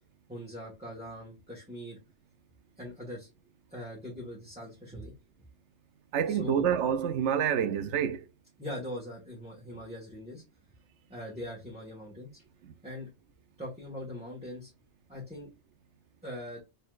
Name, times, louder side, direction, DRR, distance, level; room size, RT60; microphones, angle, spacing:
voice 1, 0.3-2.0 2.8-3.3 3.7-5.1 6.3-6.6 8.6-10.4 11.1-12.4 12.8-13.1 13.6-14.7 15.1-15.5 16.2-16.6, left 1 dB, 5° right, 1.6 m, -41 dB
voice 2, 6.1-8.2 12.6-12.7, right 8 dB, 80° right, 1.0 m, -27 dB
4.2 x 3.9 x 2.4 m
omnidirectional pair, 1.2 m